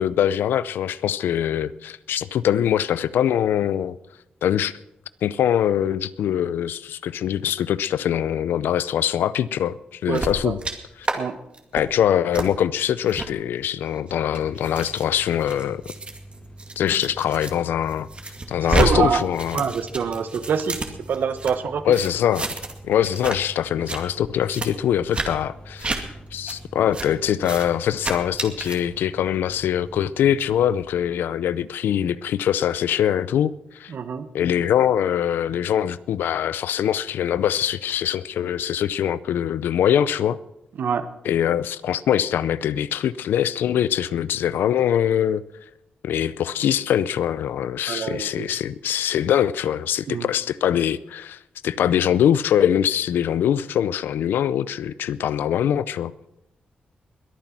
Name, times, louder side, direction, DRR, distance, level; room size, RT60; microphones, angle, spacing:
voice 1, 0.0-4.0 4.4-4.7 5.2-10.6 11.7-15.8 16.8-18.1 18.5-19.6 21.8-22.5 22.8-33.9 34.3-40.4 41.2-45.4 46.0-56.1, left 10 dB, 90° left, 0.5 m, -23 dB
sound 1, 10.1-10.7 11.0-11.2 11.5-11.8 12.3-12.5 13.1-13.3 13.9-17.5 17.9-18.9 19.2-21.5 21.9-22.8 23.0-23.4 23.7-24.0 24.5-24.7 25.1-25.3 25.8-26.0 26.5-26.6 26.9-27.1 27.4-27.7 28.0-28.8, right 3 dB, 35° right, 2.2 m, -29 dB
voice 2, 10.1-10.5 11.1-11.4 18.7-19.2 19.5-22.0 33.9-34.3 40.8-41.1 47.9-48.5 50.1-50.3, right 6 dB, 70° right, 1.2 m, -25 dB
sound 2, 14.4-30.9, right 1 dB, 35° left, 2.3 m, -44 dB
21.5 x 9.0 x 6.0 m
cardioid pair, 75°, 3 cm